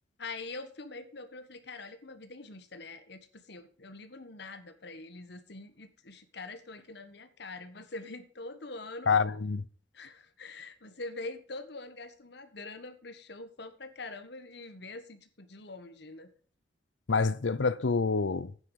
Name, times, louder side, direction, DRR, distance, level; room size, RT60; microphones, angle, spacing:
voice 1, 0.2-9.2 9.9-16.3, left 3 dB, 60° left, 1.5 m, -44 dB
voice 2, 9.1-9.6 17.1-18.5, left 4 dB, 80° left, 0.7 m, -27 dB
9.8 x 9.3 x 4.9 m
head